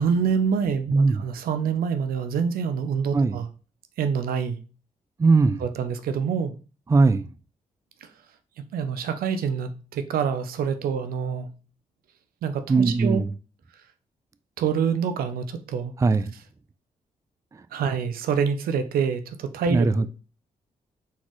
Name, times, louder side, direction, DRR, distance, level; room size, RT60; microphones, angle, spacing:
voice 1, 0.0-0.9 1.2-3.5 4.0-4.6 5.6-6.6 8.0-8.1 8.6-11.5 12.4-13.2 14.6-15.9 17.7-20.1, right 6 dB, 85° right, 0.5 m, -26 dB
voice 2, 0.9-1.2 3.1-3.4 5.2-5.6 6.9-7.3 12.7-13.3 16.0-16.3 17.5-17.6 19.7-20.1, right 3 dB, 20° right, 0.3 m, -20 dB
4.0 x 4.0 x 3.0 m
cardioid pair, 65°, 15 cm